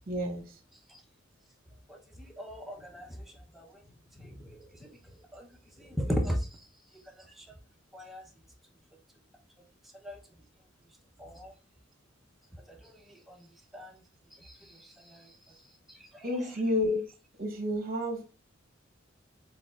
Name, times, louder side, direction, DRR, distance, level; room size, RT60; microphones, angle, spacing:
voice 1, 0.1-0.6 16.2-17.1 17.4-18.3, left 1 dB, 45° right, 4 dB, 1.0 m, -30 dB
voice 2, 1.9-5.5 5.8-6.7 6.9-7.5 7.9-8.3 10.0-10.2 11.2-11.5 12.5-14.0 14.4-16.3, equal, ahead, 1 dB, 0.7 m, -39 dB
4.6 x 3.9 x 2.4 m, 0.33 s
head